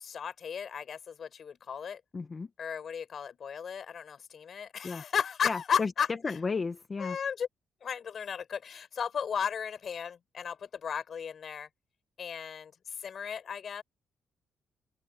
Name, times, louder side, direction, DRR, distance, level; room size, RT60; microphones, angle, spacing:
voice 1, 0.0-2.0 2.6-6.1 7.0-7.5 7.8-11.7 12.2-13.8, left 7 dB, 45° left, 4.4 m, -35 dB
voice 2, 2.1-2.5 4.8-5.0 5.4-7.2, left 4 dB, 25° left, 0.9 m, -34 dB
open air
cardioid pair, 150°, 0 cm